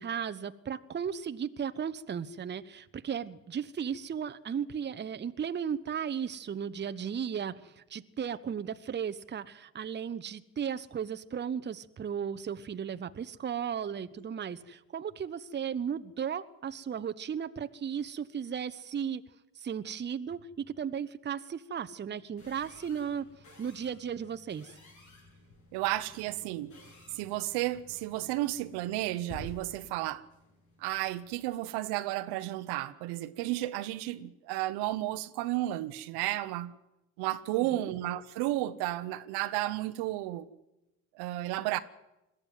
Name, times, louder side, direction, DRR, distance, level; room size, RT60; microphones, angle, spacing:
voice 1, 0.0-19.2 19.6-23.3 23.6-24.7 37.5-37.8, right 7 dB, 25° right, 0.9 m, -35 dB
sound 1, 22.4-31.5, equal, 80° left, 7.8 m, -53 dB
voice 2, 25.7-26.7 27.1-30.2 30.8-36.7 37.2-40.5 41.2-41.8, right 16 dB, 65° right, 1.0 m, -32 dB
21.0 x 14.0 x 9.3 m
hypercardioid pair, 70°, 42 cm